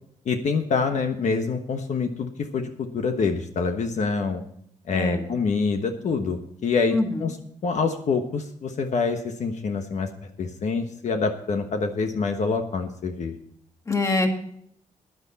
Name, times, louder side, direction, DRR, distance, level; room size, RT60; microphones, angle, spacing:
voice 1, 0.2-4.4 4.9-7.4 7.6-13.3, left 4 dB, 60° left, 6 dB, 1.2 m, -26 dB
voice 2, 4.9-5.3 6.9-7.3 13.9-14.3, left 2 dB, 20° left, 4 dB, 1.8 m, -24 dB
14.0 x 11.0 x 4.1 m, 0.68 s
wide cardioid pair, 135°, 14 cm